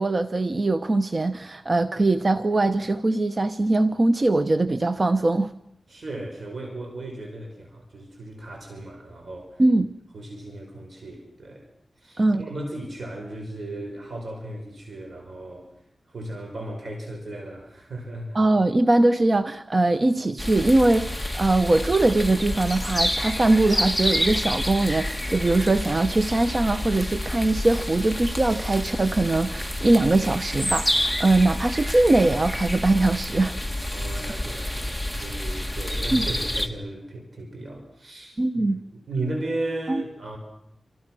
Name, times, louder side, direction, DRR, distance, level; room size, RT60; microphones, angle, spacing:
voice 1, 0.0-5.5 9.6-9.9 12.2-12.5 18.3-33.6 36.1-36.3 38.4-38.8 39.9-40.0, right 2 dB, 35° right, 0.9 m, -21 dB
voice 2, 5.9-9.6 10.1-11.7 12.0-15.7 16.1-18.4 33.9-38.6 39.1-40.4, right 2 dB, 55° right, 5.5 m, -35 dB
sound 1, 20.4-36.7, left 1 dB, ahead, 1.9 m, -29 dB
28.5 x 25.5 x 6.2 m
wide cardioid pair, 90°, 0 cm